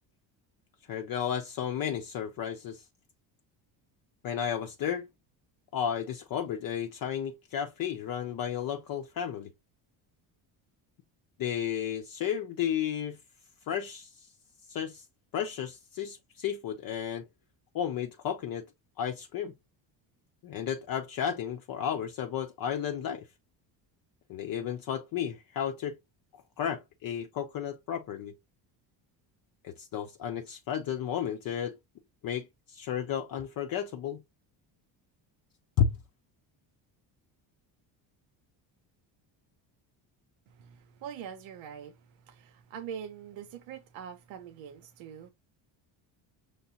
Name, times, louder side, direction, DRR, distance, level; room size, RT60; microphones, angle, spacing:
voice 1, 0.9-2.9 4.2-5.1 5.7-9.5 11.4-13.2 13.7-14.3 14.7-15.0 15.3-17.3 17.7-18.7 19.0-19.5 20.4-23.3 24.3-26.0 26.6-28.3 29.6-31.8 32.2-34.2 35.8-36.0, left 9 dB, 50° left, 0.6 m, -33 dB
voice 2, 40.5-45.3, right 8 dB, 80° right, 0.8 m, -44 dB
5.6 x 3.2 x 2.8 m
cardioid pair, 100°, 46 cm